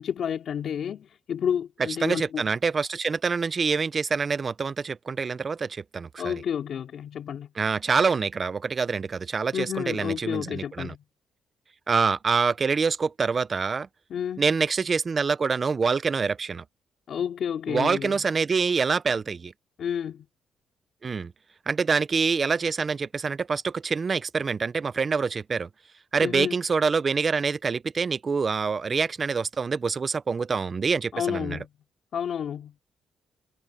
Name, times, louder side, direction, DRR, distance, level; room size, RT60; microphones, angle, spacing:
voice 1, 0.0-2.4 6.2-7.5 9.5-11.0 14.1-14.4 17.1-18.2 19.8-20.3 26.2-26.6 31.1-31.7 32.1-32.7, left 8 dB, 60° left, 2.8 m, -30 dB
voice 2, 2.0-6.4 7.6-10.9 11.9-13.9 14.4-16.6 17.7-19.5 21.0-21.3 21.7-25.7 26.1-31.6, right 5 dB, 35° right, 0.8 m, -26 dB
cardioid pair, 90°, 0 cm